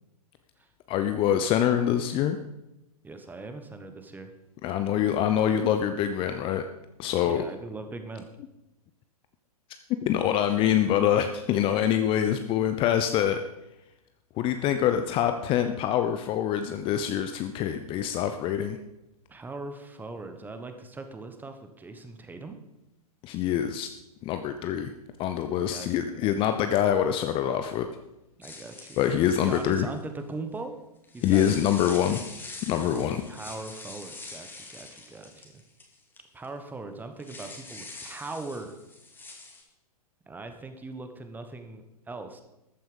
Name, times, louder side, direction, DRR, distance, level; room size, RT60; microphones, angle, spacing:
voice 1, 0.9-2.4 4.6-6.7 7.0-7.4 10.0-13.4 14.4-18.8 23.2-23.9 24.2-24.9 25.2-27.9 29.0-29.9 31.2-32.2 32.7-33.2, left 10 dB, 25° left, 8 dB, 0.7 m, -25 dB
voice 2, 3.0-4.3 7.2-8.3 19.3-22.6 25.7-26.6 28.4-29.1 29.4-30.7 31.1-31.9 32.7-35.4 36.3-38.7 40.3-42.4, right 3 dB, 10° right, 7 dB, 1.3 m, -40 dB
sound 1, 28.4-30.0 31.0-36.2 36.4-36.5 37.2-39.6, left 3 dB, 10° left, 2.4 m, -44 dB
14.0 x 9.1 x 5.3 m, 0.91 s
figure-of-eight pair, 110°, 20 cm